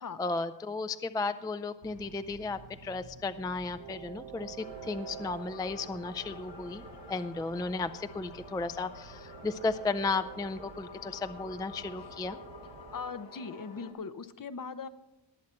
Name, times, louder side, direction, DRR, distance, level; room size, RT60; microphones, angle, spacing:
voice 1, 0.0-12.4, left 3 dB, 10° left, 10 dB, 0.3 m, -34 dB
Train, 1.8-13.1, right 6 dB, 65° right, 0.9 m, -50 dB
sound 1, 4.6-13.9, left 2 dB, 90° left, 1.8 m, -49 dB
voice 2, 12.9-14.9, left 5 dB, 50° left, 12 dB, 0.7 m, -40 dB
19.0 x 7.4 x 4.4 m, 0.98 s
wide cardioid pair, 100°, 44 cm